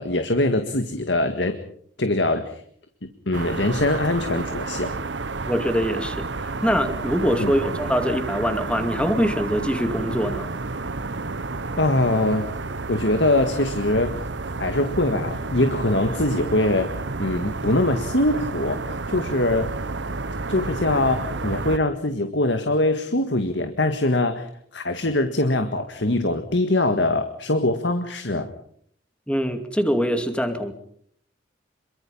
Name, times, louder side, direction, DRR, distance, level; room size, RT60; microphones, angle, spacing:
voice 1, 0.0-1.5 2.0-2.6 3.3-5.0 7.4-7.5 11.8-12.4 12.9-14.2 14.6-16.9 17.2-18.8 19.1-19.7 20.5-28.5, left 2 dB, 65° left, 8 dB, 1.9 m, -23 dB
sound 1, 3.3-21.8, right 3 dB, 70° right, 1.0 m, -30 dB
voice 2, 5.5-10.5 29.3-30.7, equal, 5° left, 7 dB, 2.4 m, -23 dB
26.5 x 23.5 x 5.6 m, 0.63 s
head